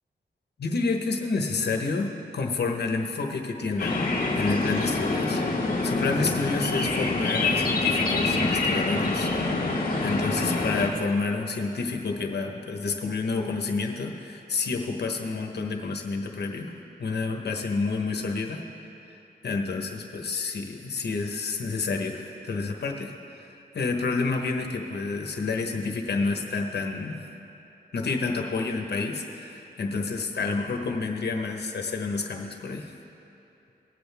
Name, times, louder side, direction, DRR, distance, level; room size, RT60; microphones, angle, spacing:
voice 1, 0.6-9.3 10.0-16.7 17.0-18.6 19.4-23.1 23.7-27.3 27.9-32.9, left 4 dB, 70° left, 2 dB, 1.2 m, -29 dB
sound 1, 3.8-10.9, left 3 dB, 55° left, 1.7 m, -26 dB
20.0 x 7.8 x 3.5 m, 2.9 s
cardioid pair, 75°, 17 cm